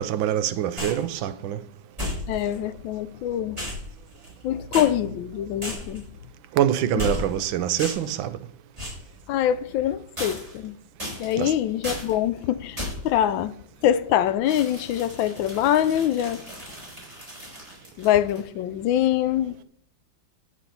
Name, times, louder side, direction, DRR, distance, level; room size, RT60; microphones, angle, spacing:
voice 1, 0.0-1.6 6.5-8.4 11.4-11.5, right 11 dB, 85° right, 1.4 m, -25 dB
sound 1, 0.8-1.1 2.0-2.6 3.6-4.4 4.7-4.9 5.6-6.1 7.0-7.4 7.8-8.2 8.8-9.1 10.2-10.7 11.0-11.5 11.8-12.1 12.8-13.1 14.5-18.4, left 1 dB, 15° right, 4.6 m, -34 dB
voice 2, 2.3-3.6 4.4-6.1 6.9-7.0 9.3-10.8 11.2-13.5 13.8-16.4 18.0-19.6, left 11 dB, 80° left, 1.3 m, -24 dB
9.9 x 5.9 x 5.5 m
omnidirectional pair, 2.1 m